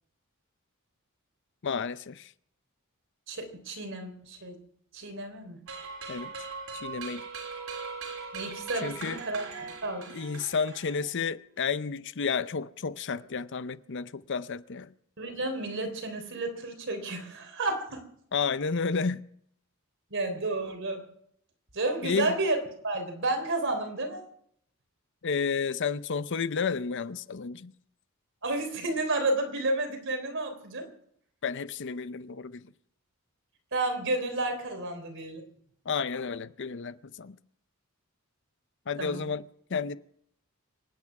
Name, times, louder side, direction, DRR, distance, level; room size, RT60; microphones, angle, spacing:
voice 1, 1.6-2.3 6.1-6.3 6.7-7.2 8.8-9.2 10.1-14.9 18.3-19.2 22.0-22.4 25.2-27.7 31.4-32.7 35.9-37.4 38.9-39.4 39.7-40.0, left 5 dB, 60° left, 0.6 m, -31 dB
voice 2, 3.3-4.6 4.9-5.6 8.3-10.0 15.2-18.0 20.1-21.0 21.7-22.6 22.8-24.2 28.4-30.9 33.7-35.4 39.0-39.2, right 2 dB, 60° right, 3.6 m, -31 dB
sound 1, 5.7-11.3, right 4 dB, 85° right, 3.4 m, -40 dB
25.5 x 9.7 x 5.9 m
head